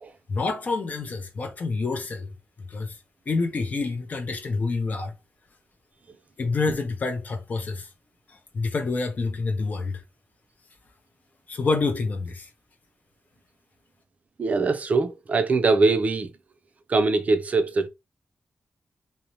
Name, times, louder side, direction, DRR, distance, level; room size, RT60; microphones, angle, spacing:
voice 1, 0.3-2.3 2.7-3.0 3.3-5.1 6.4-7.9 8.3-10.0 11.5-12.5, left 3 dB, 45° left, 0.6 m, -27 dB
voice 2, 14.4-16.3 16.9-17.9, right 3 dB, 40° right, 0.4 m, -22 dB
2.6 x 2.0 x 2.9 m
wide cardioid pair, 150°, 4 cm